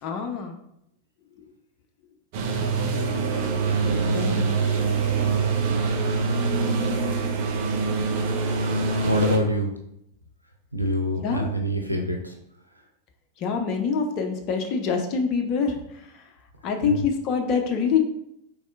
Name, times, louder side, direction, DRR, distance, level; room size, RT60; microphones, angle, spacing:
voice 1, 0.0-0.6 4.1-4.5 11.2-11.5 13.4-16.2 16.6-18.0, left 5 dB, 40° left, 4 dB, 0.5 m, -25 dB
sound 1, 2.3-9.4, right 4 dB, 50° right, 0.5 m, -24 dB
voice 2, 3.7-4.5 9.0-9.7 10.7-12.3 16.9-17.0, right 1 dB, 90° left, 1 dB, 0.5 m, -26 dB
4.2 x 3.2 x 2.4 m, 0.78 s
figure-of-eight pair, 90°, 0 cm